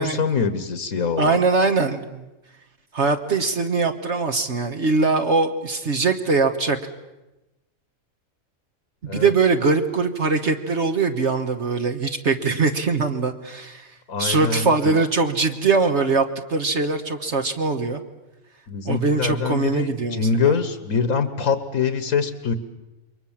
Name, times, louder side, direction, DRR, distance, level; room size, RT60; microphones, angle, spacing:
voice 1, 0.0-1.4 9.1-9.3 14.1-14.9 18.7-22.5, left 5 dB, 80° left, 11 dB, 1.8 m, -24 dB
voice 2, 1.2-2.2 2.9-6.8 9.0-13.9 14.2-18.0 18.8-20.3, right 4 dB, 55° right, 6 dB, 1.6 m, -22 dB
28.0 x 23.0 x 7.4 m, 1.0 s
omnidirectional pair, 1.5 m